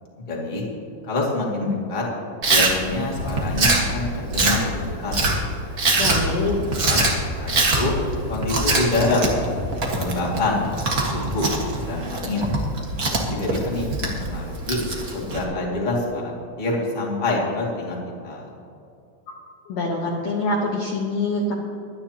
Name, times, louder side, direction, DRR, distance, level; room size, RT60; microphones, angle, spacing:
voice 1, 0.3-0.6 1.0-2.0 2.4-5.6 6.4-7.9 8.3-9.2 9.9-10.7 11.1-11.5 11.8-12.5 13.2-14.8 15.1-16.3 16.6-18.0 18.2-18.5, left 2 dB, 15° left, -3 dB, 1.6 m, -26 dB
Chewing mastication, 2.4-15.4, right 2 dB, 70° right, 0.8 m, -24 dB
voice 2, 6.0-6.6 19.7-21.5, left 2 dB, 65° left, -2 dB, 1.8 m, -25 dB
23.5 x 9.7 x 2.9 m, 2.5 s
omnidirectional pair, 4.4 m